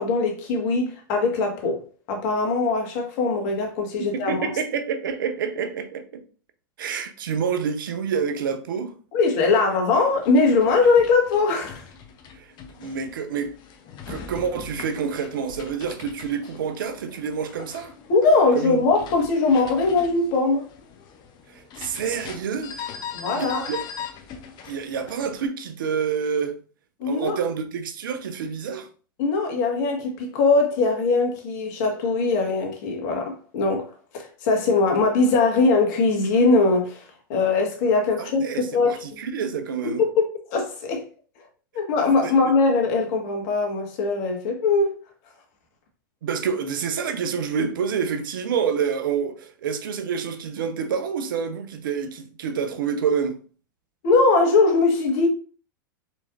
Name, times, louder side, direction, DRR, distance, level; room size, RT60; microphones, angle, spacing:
voice 1, 0.0-1.8 2.1-4.5 9.1-11.8 18.1-20.7 23.1-23.7 27.0-27.4 29.2-37.0 37.3-39.0 39.8-41.0 41.7-44.9 54.0-55.3, left 3 dB, 55° left, 1.5 m, -21 dB
voice 2, 4.1-6.2 6.8-8.9 12.3-12.5 12.8-13.5 14.1-17.9 18.5-18.8 21.5-22.8 23.3-23.8 24.7-26.6 27.0-28.9 38.2-40.0 42.2-42.5 46.2-53.4, right 6 dB, 75° right, 0.8 m, -28 dB
sound 1, 10.1-25.5, left 7 dB, 40° left, 0.8 m, -40 dB
4.5 x 4.4 x 2.5 m
hypercardioid pair, 100°, 11 cm